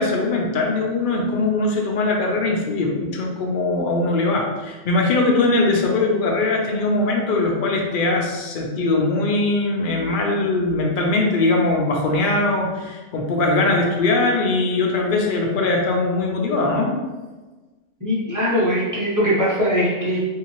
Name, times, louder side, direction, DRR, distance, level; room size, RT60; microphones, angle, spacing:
voice 1, 0.0-16.9, left 2 dB, 55° left, 0 dB, 0.6 m, -21 dB
voice 2, 18.0-20.3, equal, 15° right, -8 dB, 0.9 m, -21 dB
3.2 x 2.8 x 2.9 m, 1.2 s
omnidirectional pair, 1.3 m